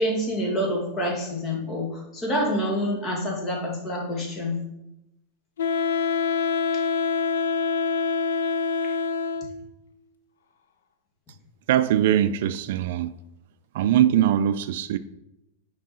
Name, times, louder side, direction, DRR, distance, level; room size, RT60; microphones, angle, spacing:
voice 1, 0.0-4.5, equal, 25° left, 2.0 m, -27 dB
Wind instrument woodwind instrument, 5.6-9.7, left 5 dB, 90° left, 0.6 m, -25 dB
voice 2, 11.7-13.1 13.7-15.0, right 11 dB, 65° right, 0.3 m, -21 dB
6.0 x 4.6 x 4.3 m
supercardioid pair, 135°, 0 cm